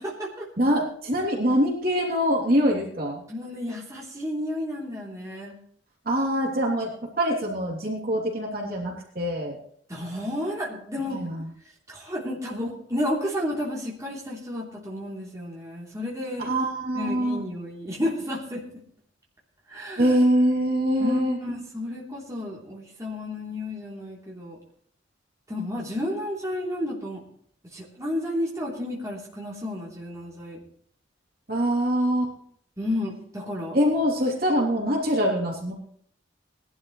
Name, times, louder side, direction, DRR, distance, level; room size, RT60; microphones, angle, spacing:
voice 1, 0.0-0.5 3.3-5.6 9.9-11.2 11.9-16.5 16.9-18.6 19.7-20.2 21.0-24.6 25.5-27.2 27.7-30.6 32.8-33.8, left 1 dB, 15° right, -5 dB, 3.3 m, -32 dB
voice 2, 0.6-3.2 6.0-9.6 11.1-11.4 16.4-17.4 20.0-21.4 31.5-32.3 33.7-35.7, equal, 50° right, -2 dB, 3.2 m, -24 dB
19.5 x 12.0 x 3.2 m, 0.62 s
head